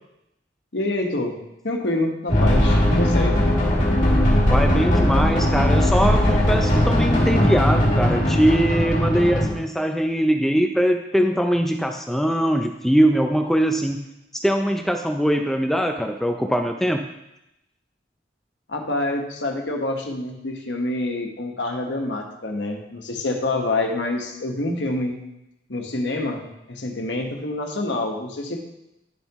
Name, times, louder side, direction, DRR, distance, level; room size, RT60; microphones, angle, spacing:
voice 1, 0.7-1.3 1.6-3.4 18.7-25.2 25.7-28.6, left 2 dB, 70° left, 1 dB, 1.4 m, -27 dB
sound 1, 2.3-9.5, equal, 45° left, 2.1 m, -19 dB
voice 2, 4.5-14.0 14.3-17.0, equal, ahead, 4 dB, 0.4 m, -21 dB
11.0 x 7.1 x 3.0 m, 0.87 s
head